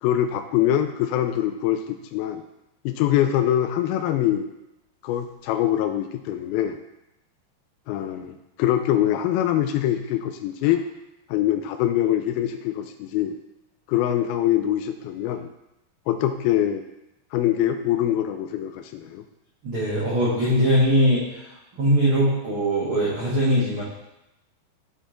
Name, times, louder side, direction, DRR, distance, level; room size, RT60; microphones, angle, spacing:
voice 1, 0.0-2.4 2.9-4.5 5.0-6.8 7.9-10.9 11.3-13.4 13.9-15.5 16.1-16.9 17.3-19.2, left 11 dB, 85° left, 8 dB, 2.2 m, -23 dB
voice 2, 19.6-21.4 21.8-23.8, equal, 55° right, -8 dB, 1.5 m, -21 dB
13.5 x 4.7 x 3.8 m, 0.90 s
omnidirectional pair, 4.8 m